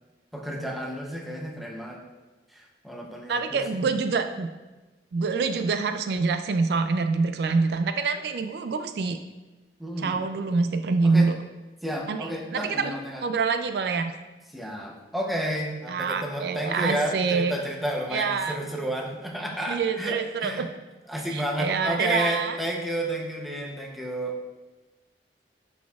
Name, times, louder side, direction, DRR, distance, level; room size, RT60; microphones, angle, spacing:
voice 1, 0.3-2.0 2.5-3.9 9.8-10.2 11.0-11.3 11.8-13.2 14.5-20.6 21.1-24.4, right 1 dB, ahead, -1 dB, 0.7 m, -31 dB
voice 2, 3.3-4.5 5.1-9.2 10.0-11.3 12.1-12.9 13.2-14.1 15.9-17.6 18.1-18.6 19.7-20.7 21.3-22.6, right 4 dB, 65° right, 8 dB, 0.3 m, -26 dB
10.5 x 4.2 x 2.3 m, 1.2 s
head